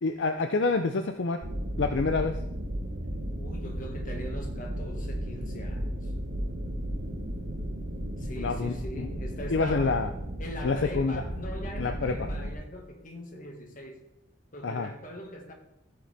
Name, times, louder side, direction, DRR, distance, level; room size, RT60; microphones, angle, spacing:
voice 1, 0.0-1.4 1.8-2.4 8.4-9.1 9.5-10.1 10.6-11.2 11.8-12.3 14.6-14.9, left 4 dB, 70° left, 7 dB, 0.5 m, -27 dB
sound 1, 1.4-12.5, equal, 75° right, 1.3 m, -34 dB
voice 2, 3.3-6.1 8.2-10.0 10.4-14.0 14.5-15.5, equal, 45° left, 3 dB, 1.7 m, -41 dB
15.0 x 6.7 x 3.4 m, 0.86 s
head